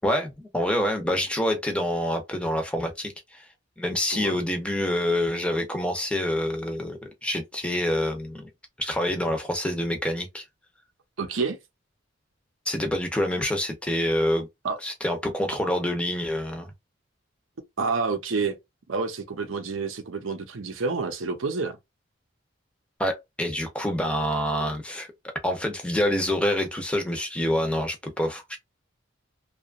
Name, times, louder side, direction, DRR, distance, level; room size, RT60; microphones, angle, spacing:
voice 1, 0.0-3.4 3.8-8.5 8.8-10.4 12.7-14.5 14.8-16.7 23.0-25.1 25.4-28.6, left 1 dB, 5° left, 0.6 m, -27 dB
voice 2, 11.2-11.6 14.6-14.8 17.8-18.6 18.9-21.8, right 4 dB, 85° right, 0.6 m, -28 dB
2.8 x 2.3 x 2.4 m
head